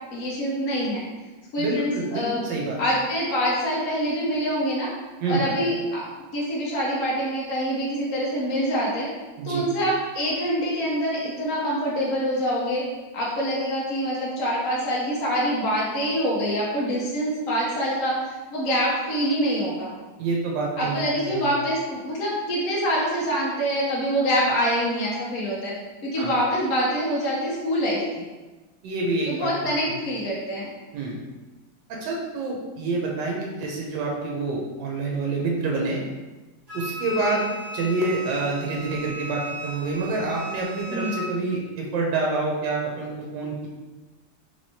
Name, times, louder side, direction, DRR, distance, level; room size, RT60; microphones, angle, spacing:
voice 1, 0.1-1.0 1.5-2.4 2.8-4.9 5.3-6.0 6.3-9.1 9.4-12.8 13.1-19.9 20.8-25.7 26.0-28.2 29.3-30.7 37.3-37.4 40.9-41.2, equal, 55° left, -5 dB, 1.1 m, -25 dB
voice 2, 1.6-2.8 5.2-5.4 9.4-9.7 20.2-21.0 21.3-21.6 26.2-26.3 28.8-30.0 30.9-31.2 31.9-36.0 36.7-37.5 37.7-43.7, right 3 dB, 80° right, -2 dB, 1.3 m, -27 dB
Wind instrument woodwind instrument, 36.7-41.3, equal, 45° right, 1.5 m, -36 dB
3.5 x 3.3 x 2.7 m, 1.2 s
omnidirectional pair, 2.0 m